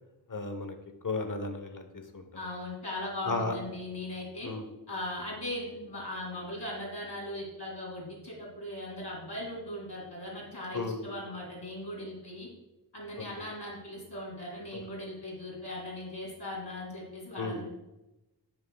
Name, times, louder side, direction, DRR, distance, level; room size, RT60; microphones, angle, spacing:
voice 1, 0.3-0.8 1.0-2.2 3.2-3.6 4.4-4.6 10.7-11.0 14.7-14.8 17.4-17.6, left 3 dB, 50° left, 7 dB, 1.0 m, -34 dB
voice 2, 2.3-4.5 4.9-12.5 12.9-17.7, left 1 dB, 75° left, -2 dB, 2.6 m, -39 dB
10.5 x 6.5 x 2.3 m, 0.98 s
wide cardioid pair, 40°, 40 cm